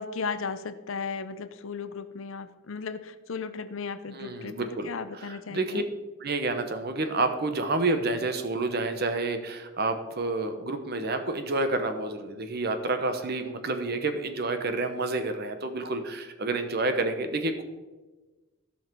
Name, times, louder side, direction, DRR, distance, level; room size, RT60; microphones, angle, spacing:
voice 1, 0.0-5.8, left 5 dB, 65° left, 12 dB, 0.6 m, -36 dB
voice 2, 4.1-5.8 6.2-17.6, right 2 dB, 45° right, 8 dB, 0.9 m, -29 dB
14.5 x 5.7 x 4.5 m, 1.2 s
head